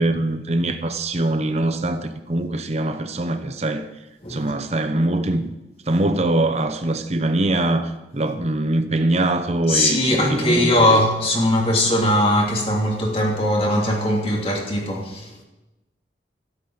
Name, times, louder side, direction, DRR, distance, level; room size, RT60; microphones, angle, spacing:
voice 1, 0.0-3.8 4.3-5.5 5.9-11.0, right 1 dB, 35° right, 0.9 m, -23 dB
voice 2, 4.2-4.5 9.7-15.3, left 1 dB, 30° left, 2.9 m, -20 dB
13.0 x 9.2 x 8.8 m
head